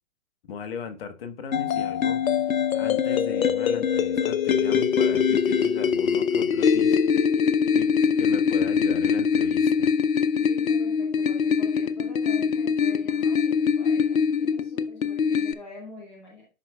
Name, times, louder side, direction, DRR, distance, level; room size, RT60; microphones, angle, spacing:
voice 1, 0.5-2.2 2.7-7.0 7.7-9.9, left 6 dB, 45° left, 1.0 m, -37 dB
sound 1, 1.5-15.5, left 6 dB, 75° left, 0.7 m, -23 dB
voice 2, 10.4-16.5, left 1 dB, 5° left, 0.4 m, -45 dB
11.0 x 4.6 x 2.3 m
hypercardioid pair, 130°, 42 cm